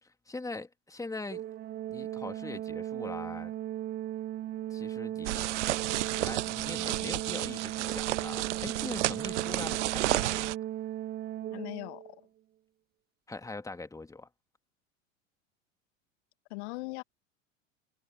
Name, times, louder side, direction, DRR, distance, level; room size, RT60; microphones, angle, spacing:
voice 1, 0.0-1.4 1.9-3.5 4.7-5.4 6.1-10.5 13.3-14.3, left 3 dB, 10° left, 3.0 m, -42 dB
Organ, 1.3-12.2, right 12 dB, 25° right, 0.7 m, -37 dB
sound 1, 5.2-10.5, right 16 dB, 60° right, 0.8 m, -32 dB
voice 2, 11.5-12.2 16.5-17.0, left 28 dB, 55° left, 2.2 m, -39 dB
figure-of-eight pair, 80°, 40 cm